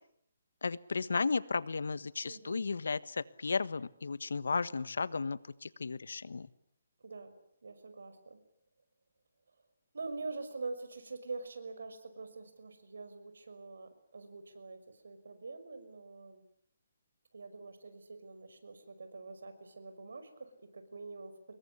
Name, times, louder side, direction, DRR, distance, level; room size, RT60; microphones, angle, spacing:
voice 1, 0.6-3.0 3.4-5.4 5.8-6.4, left 4 dB, 85° left, 17 dB, 1.4 m, -34 dB
voice 2, 2.2-2.7 7.0-7.3 7.6-8.4 9.9-16.4 17.3-21.5, right 3 dB, 85° right, 9 dB, 5.8 m, -45 dB
26.5 x 22.0 x 9.8 m, 0.69 s
hypercardioid pair, 170°, 0 cm